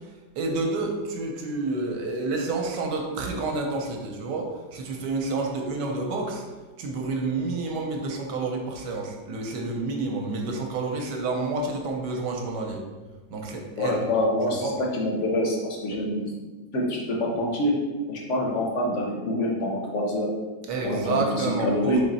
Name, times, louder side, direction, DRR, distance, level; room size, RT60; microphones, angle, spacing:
voice 1, 0.4-6.4 6.8-12.8 13.3-14.0 14.5-14.7 20.7-22.0, right 3 dB, 75° right, 1 dB, 1.3 m, -29 dB
voice 2, 13.8-16.3 16.7-17.7 18.1-20.3 20.8-22.0, left 1 dB, 65° left, -1 dB, 0.7 m, -26 dB
4.0 x 3.1 x 4.0 m, 1.3 s
omnidirectional pair, 2.0 m